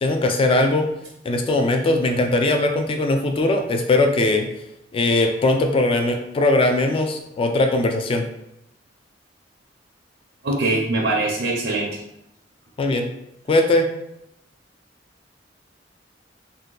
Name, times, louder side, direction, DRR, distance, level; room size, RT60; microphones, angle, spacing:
voice 1, 0.0-0.9 1.2-4.5 4.9-8.3 12.8-13.1 13.5-13.9, left 2 dB, 30° left, 4 dB, 0.3 m, -20 dB
voice 2, 10.4-12.0, right 2 dB, 65° right, -2 dB, 0.5 m, -22 dB
2.7 x 2.2 x 3.7 m, 0.82 s
head